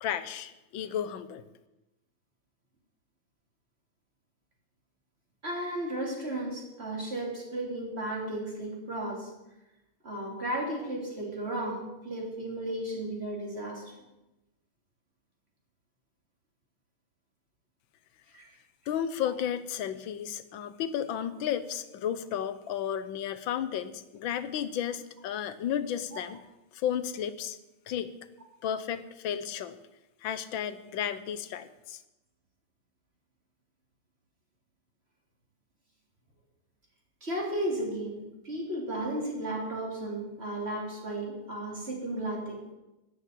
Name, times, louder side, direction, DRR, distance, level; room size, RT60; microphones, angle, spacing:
voice 1, 0.0-1.4 18.9-26.4 26.7-27.6 27.9-28.1 28.6-29.8 30.2-32.0, left 9 dB, 70° left, 13 dB, 1.5 m, -33 dB
voice 2, 5.4-9.3 10.0-14.0 18.3-18.5 26.1-26.2 37.2-42.6, right 1 dB, 30° right, -1 dB, 3.4 m, -34 dB
13.0 x 7.2 x 9.1 m, 0.97 s
omnidirectional pair, 2.3 m